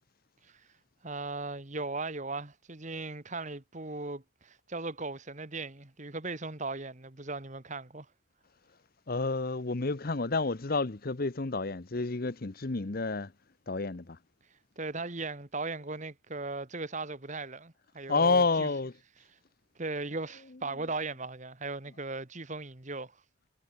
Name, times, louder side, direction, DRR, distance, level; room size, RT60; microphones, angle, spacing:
voice 1, 1.0-8.1 14.8-18.7 19.8-23.1, right 3 dB, 35° right, 1.7 m, -38 dB
voice 2, 9.1-13.3 13.7-14.2 18.1-18.9, left 3 dB, 45° left, 0.8 m, -29 dB
head